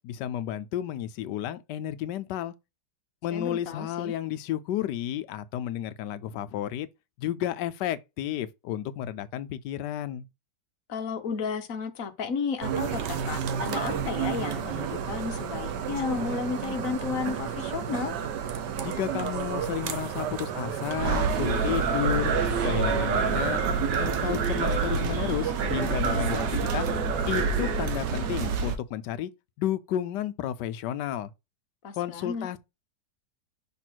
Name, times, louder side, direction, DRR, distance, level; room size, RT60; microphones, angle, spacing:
voice 1, 0.0-2.5 3.2-6.9 7.2-10.3 18.8-22.3 22.6-23.6 24.0-26.4 26.7-26.9 27.3-29.3 29.6-31.3 32.0-32.6, left 11 dB, 80° left, 1.2 m, -32 dB
voice 2, 3.3-4.1 10.9-18.1 31.8-32.5, left 5 dB, 55° left, 1.2 m, -33 dB
sound 1, 12.6-28.6, right 8 dB, 80° right, 1.4 m, -32 dB
sound 2, 21.0-28.8, right 4 dB, 60° right, 1.1 m, -27 dB
6.0 x 3.5 x 4.5 m
omnidirectional pair, 1.8 m